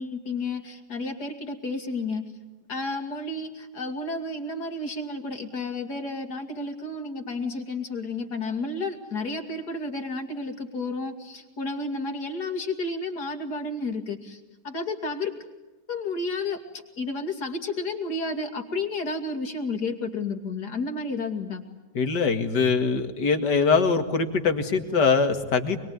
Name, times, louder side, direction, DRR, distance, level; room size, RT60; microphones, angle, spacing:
voice 1, 0.0-2.2 2.7-15.3 15.9-16.6 17.0-21.6, left 3 dB, 75° left, 6 dB, 3.0 m, -31 dB
voice 2, 22.0-25.8, left 5 dB, 90° left, 8 dB, 2.6 m, -23 dB
25.0 x 23.0 x 9.5 m, 1.1 s
omnidirectional pair, 1.8 m